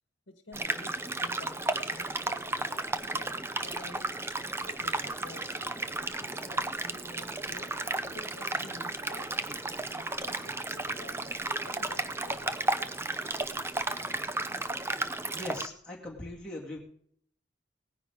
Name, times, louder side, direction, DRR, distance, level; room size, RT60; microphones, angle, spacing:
voice 1, 0.3-4.1 4.6-7.7 8.1-9.6 9.9-12.6, left 2 dB, 70° left, 6 dB, 1.3 m, -51 dB
sound 1, 0.5-15.7, right 2 dB, 15° right, 0.5 m, -33 dB
voice 2, 15.3-16.8, left 1 dB, 5° left, -5 dB, 2.3 m, -40 dB
18.0 x 10.0 x 3.7 m, 0.63 s
head